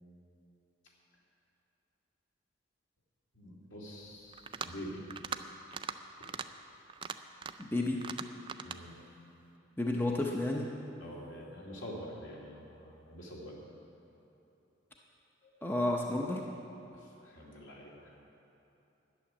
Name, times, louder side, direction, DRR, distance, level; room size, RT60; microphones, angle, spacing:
voice 1, 3.3-5.2 6.2-6.4 8.6-9.1 11.0-13.6 15.4-15.6 16.9-18.2, equal, 70° left, -3 dB, 2.5 m, -46 dB
sound 1, 4.3-4.8 5.1-5.4 5.7-6.0 6.2-6.5 6.9-7.7 8.0-8.8, right 6 dB, 25° right, 0.3 m, -40 dB
voice 2, 7.6-8.0 9.8-10.7 15.6-16.4, left 2 dB, 10° left, 0 dB, 0.7 m, -31 dB
11.5 x 7.1 x 9.7 m, 2.9 s
head